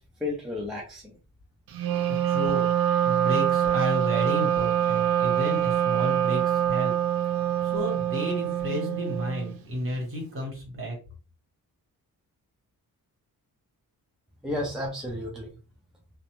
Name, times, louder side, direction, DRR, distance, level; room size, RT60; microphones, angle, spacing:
voice 1, 0.2-1.1 14.4-15.5, left 2 dB, ahead, -2 dB, 0.4 m, -32 dB
Wind instrument woodwind instrument, 1.7-9.6, right 10 dB, 70° right, 0.5 m, -25 dB
voice 2, 2.2-2.7 3.0-6.9 7.6-10.9, equal, 35° right, 0 dB, 1.2 m, -32 dB
2.5 x 2.1 x 2.9 m, 0.35 s
wide cardioid pair, 150°, 37 cm